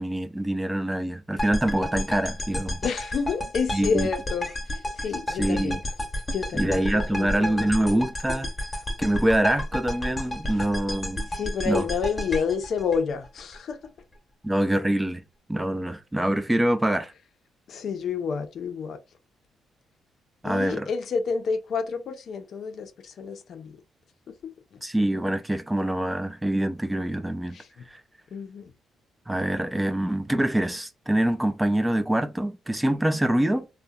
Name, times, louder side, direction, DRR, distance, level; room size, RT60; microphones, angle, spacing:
voice 1, 0.0-2.8 3.7-4.1 5.3-5.8 6.5-8.5 9.0-11.3 11.7-11.8 14.4-15.2 15.5-17.1 20.4-20.9 24.8-27.6 27.9-28.0 29.3-33.7, right 1 dB, 10° right, 0.3 m, -25 dB
sound 1, 1.4-13.6, left 1 dB, 25° left, 0.8 m, -32 dB
voice 2, 2.8-5.8 6.3-7.7 11.3-13.8 17.7-19.0 20.4-23.8 24.4-24.5 27.5-27.7 28.3-28.7, left 5 dB, 60° left, 0.4 m, -29 dB
2.7 x 2.1 x 2.3 m
cardioid pair, 90°, 0 cm